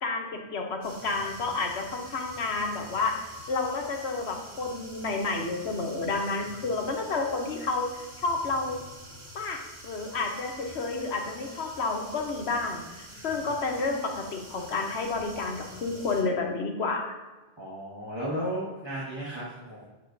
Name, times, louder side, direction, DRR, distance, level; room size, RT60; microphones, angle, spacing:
voice 1, 0.0-8.8 9.3-17.1, left 3 dB, 80° left, 2 dB, 1.2 m, -30 dB
sound 1, 0.8-16.2, equal, 45° right, 2.0 m, -47 dB
voice 2, 17.6-19.8, equal, 25° right, -9 dB, 1.5 m, -35 dB
8.4 x 6.5 x 2.6 m, 1.2 s
omnidirectional pair, 1.1 m